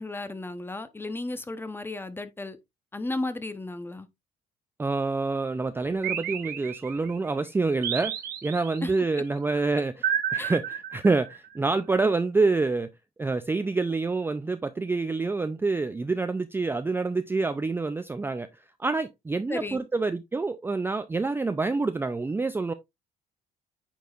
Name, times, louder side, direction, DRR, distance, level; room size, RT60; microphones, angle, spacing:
voice 1, 0.0-2.6 2.9-4.1 8.8-8.9 10.4-10.6 19.5-19.9, left 2 dB, 15° left, 0.8 m, -34 dB
voice 2, 4.8-8.2 8.4-12.9 13.2-18.5 18.8-22.7, right 3 dB, 15° right, 0.4 m, -27 dB
sound 1, 6.0-7.2 7.8-9.0 10.0-11.5, right 9 dB, 70° right, 1.2 m, -31 dB
9.2 x 4.7 x 2.4 m
cardioid pair, 110°, 17 cm